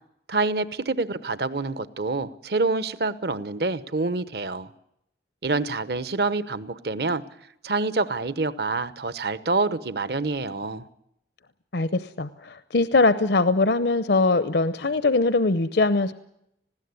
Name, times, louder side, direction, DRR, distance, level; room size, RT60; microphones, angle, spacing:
voice 1, 0.3-4.7 5.4-7.2 7.6-10.9, right 3 dB, 65° right, 15 dB, 1.0 m, -27 dB
voice 2, 11.7-16.1, left 3 dB, 70° left, 13 dB, 0.8 m, -22 dB
20.0 x 16.0 x 9.6 m, 0.78 s
head